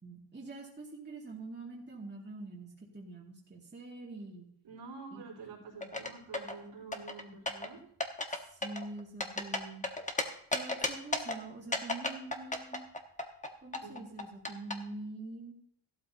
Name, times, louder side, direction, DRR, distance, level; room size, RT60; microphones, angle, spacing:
voice 1, 0.0-4.5 5.1-5.2 8.3-9.8 10.5-12.8 13.6-15.6, right 2 dB, 25° right, -3 dB, 2.2 m, -45 dB
voice 2, 4.6-7.8 13.8-14.2, right 4 dB, 70° right, -4 dB, 4.0 m, -48 dB
sound 1, 5.8-6.6 6.9-7.7 8.0-8.4 8.6-10.2 10.5-11.4 11.7-13.5 13.7-14.7, left 2 dB, 15° left, 1.2 m, -33 dB
14.5 x 12.5 x 2.8 m, 0.67 s
cardioid pair, 100°, 46 cm